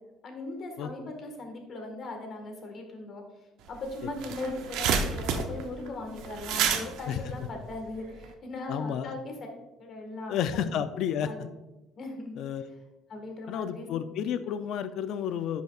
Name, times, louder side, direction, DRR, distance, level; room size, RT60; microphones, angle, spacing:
voice 1, 0.2-3.2 3.7-9.5 9.8-10.6 11.2-11.5 12.0-12.3 13.1-13.9, left 2 dB, 45° left, 3 dB, 1.6 m, -39 dB
sound 1, 3.7-3.8 4.0-8.3, right 6 dB, 75° right, 0.7 m, -30 dB
voice 2, 8.7-9.1 10.3-11.5 12.4-12.7 13.5-15.6, left 8 dB, 65° left, 11 dB, 0.4 m, -31 dB
10.0 x 5.5 x 2.4 m, 1.0 s
cardioid pair, 125°, 0 cm